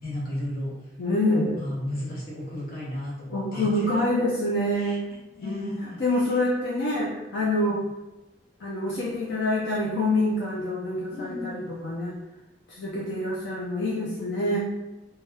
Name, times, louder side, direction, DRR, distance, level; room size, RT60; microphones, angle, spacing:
voice 1, 0.0-0.7 1.6-4.0 4.7-6.4 7.6-7.8 11.1-11.8 14.4-14.6, left 1 dB, 55° left, -5 dB, 0.9 m, -35 dB
voice 2, 1.0-1.6 3.3-5.0 5.4-5.7 6.0-7.9 8.6-12.1 12.7-14.6, left 1 dB, 80° left, -5 dB, 0.4 m, -26 dB
2.2 x 2.2 x 3.2 m, 1.0 s
head